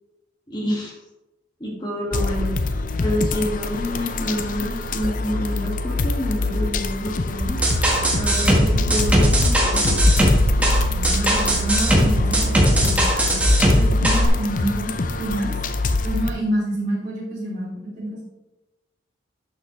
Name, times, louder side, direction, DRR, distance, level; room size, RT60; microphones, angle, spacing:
voice 1, 0.5-0.9 1.6-2.6 3.0-7.6 8.1-10.0, equal, 20° left, -1 dB, 1.8 m, -28 dB
sound 1, 2.1-16.3, left 3 dB, 45° left, 0.6 m, -26 dB
sound 2, 7.4-14.3, equal, 5° right, 1.5 m, -18 dB
voice 2, 10.9-14.9 15.2-15.6 16.0-18.2, right 1 dB, 35° right, -11 dB, 3.4 m, -28 dB
11.5 x 6.5 x 3.2 m, 0.99 s
head